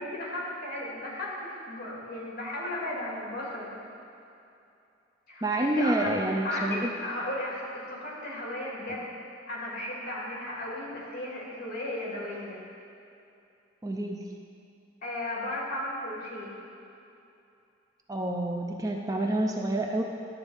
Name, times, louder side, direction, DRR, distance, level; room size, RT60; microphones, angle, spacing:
voice 1, 0.0-3.8 5.3-9.0 9.5-12.6 15.0-16.5, left 1 dB, 50° left, -5 dB, 2.5 m, -35 dB
voice 2, 5.4-6.9 13.8-14.3 18.1-20.0, right 1 dB, 20° right, 1 dB, 0.5 m, -28 dB
11.5 x 4.0 x 7.2 m, 2.7 s
head